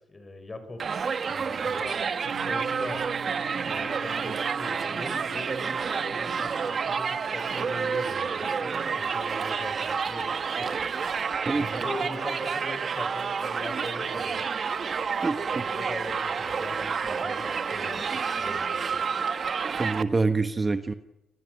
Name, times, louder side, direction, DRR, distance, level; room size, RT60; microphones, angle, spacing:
voice 1, 0.1-2.0 2.5-3.0 3.6-10.7 11.5-14.5 15.5-19.0, left 2 dB, 25° left, 10 dB, 6.2 m, -41 dB
Crowd, 0.8-20.0, right 6 dB, 45° right, 1.4 m, -29 dB
sound 1, 2.2-12.4, right 5 dB, 80° right, 4.5 m, -45 dB
voice 2, 15.2-15.8 19.8-20.9, right 3 dB, 25° right, 9 dB, 1.3 m, -26 dB
28.5 x 17.0 x 9.5 m, 0.83 s
cardioid pair, 90°, 0 cm